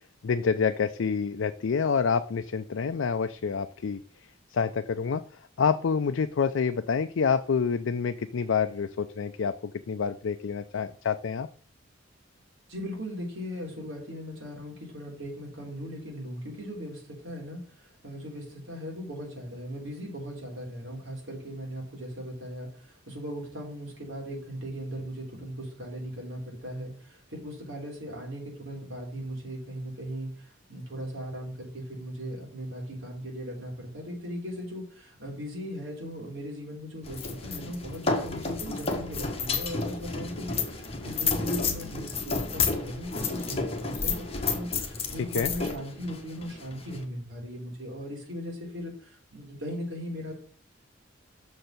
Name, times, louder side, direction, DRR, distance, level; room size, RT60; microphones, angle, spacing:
voice 1, 0.2-4.0 4.5-5.2 5.6-9.5 9.9-11.5 45.3-45.5, left 6 dB, 75° left, 8 dB, 0.4 m, -27 dB
voice 2, 12.7-44.2 44.5-50.3, equal, 75° right, -2 dB, 3.5 m, -38 dB
sound 1, 37.0-47.0, left 4 dB, 30° left, 1.2 m, -31 dB
6.5 x 4.4 x 6.5 m, 0.43 s
head